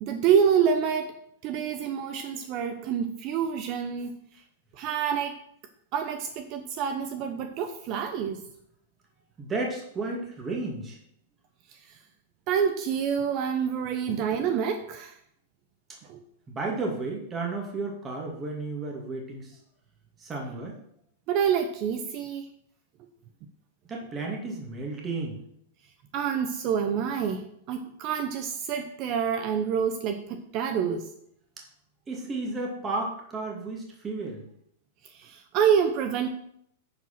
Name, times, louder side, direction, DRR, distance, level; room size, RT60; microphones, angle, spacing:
voice 1, 0.0-4.1 4.8-5.4 5.9-8.5 12.5-15.1 16.1-16.2 21.3-22.5 26.1-31.1 35.1-36.3, right 7 dB, 45° right, 7 dB, 0.9 m, -27 dB
voice 2, 9.4-11.0 16.5-19.6 20.2-20.8 23.9-25.4 32.1-34.4, right 3 dB, 20° right, -1 dB, 2.3 m, -33 dB
10.0 x 5.0 x 5.7 m, 0.71 s
hypercardioid pair, 120°, 0 cm